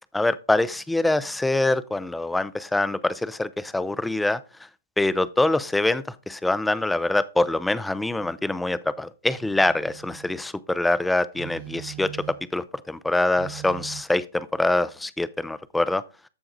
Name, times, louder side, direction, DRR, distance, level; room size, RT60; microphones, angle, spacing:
voice 1, 0.1-4.4 5.0-12.1 12.5-16.0, left 2 dB, 5° left, 0.4 m, -24 dB
Telephone, 8.1-8.4 9.3-10.4 11.3-12.6 13.3-14.0, right 16 dB, 45° right, 0.9 m, -41 dB
14.0 x 4.7 x 2.6 m
hypercardioid pair, 120°, 0 cm